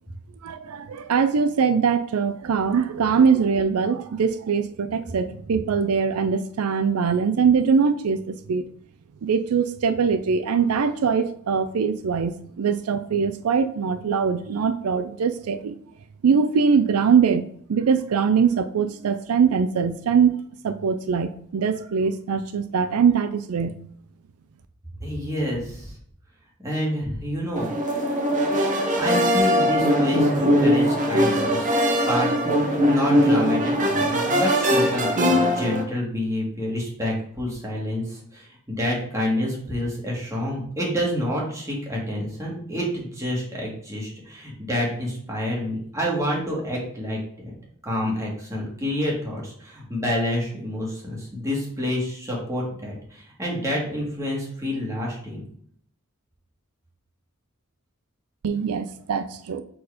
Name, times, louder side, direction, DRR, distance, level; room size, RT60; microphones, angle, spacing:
voice 1, 0.4-8.7 9.2-15.8 16.2-20.4 20.6-23.8 58.4-59.6, right 6 dB, 90° right, 11 dB, 0.4 m, -22 dB
voice 2, 25.0-25.9 26.6-27.7 29.0-31.7 32.1-47.5 47.8-55.4, left 1 dB, 15° right, -4 dB, 2.0 m, -28 dB
sound 1, 27.6-35.8, equal, 35° right, 1.0 m, -21 dB
4.6 x 4.2 x 4.9 m, 0.63 s
head